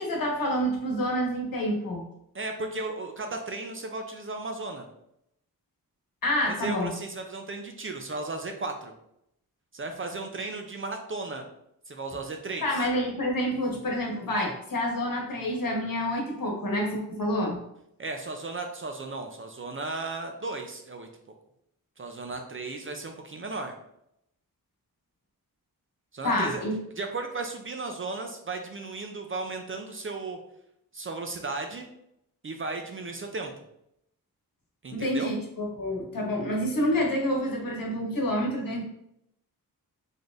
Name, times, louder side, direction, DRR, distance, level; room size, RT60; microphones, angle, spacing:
voice 1, 0.0-2.0 6.2-6.9 12.6-17.6 26.2-26.8 34.9-38.8, equal, 60° left, -1 dB, 1.1 m, -28 dB
voice 2, 2.3-4.9 6.5-8.9 9.7-11.4 11.9-12.8 18.0-21.1 22.0-23.7 26.1-26.6 27.0-30.4 30.9-31.9 32.4-33.5 34.8-35.4, right 3 dB, 35° right, 4 dB, 0.4 m, -35 dB
4.1 x 3.4 x 2.4 m, 0.78 s
wide cardioid pair, 125°, 38 cm